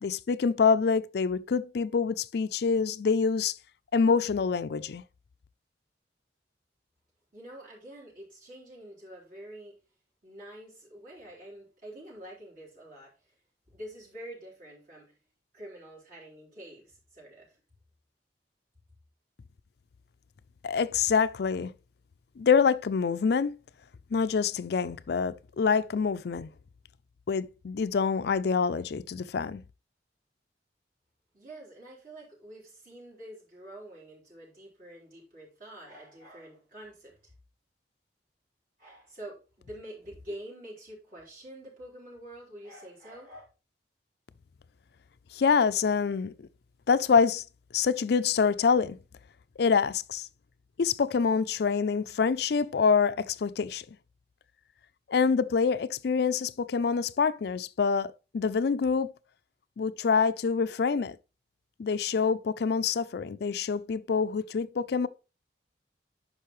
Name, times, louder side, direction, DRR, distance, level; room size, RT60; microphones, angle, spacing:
voice 1, 0.0-3.5 3.9-5.0 20.6-21.7 22.4-23.6 24.1-26.5 27.3-29.6 45.3-46.3 46.9-47.4 47.7-49.0 49.6-50.3 50.8-53.8 55.1-59.1 59.8-61.2 61.8-65.1, left 5 dB, 60° left, 0.4 m, -26 dB
voice 2, 7.3-9.8 10.2-13.4 13.7-15.2 15.5-17.6 31.3-37.3 38.8-43.5, right 1 dB, 50° right, 4.0 m, -47 dB
10.0 x 5.6 x 3.1 m
head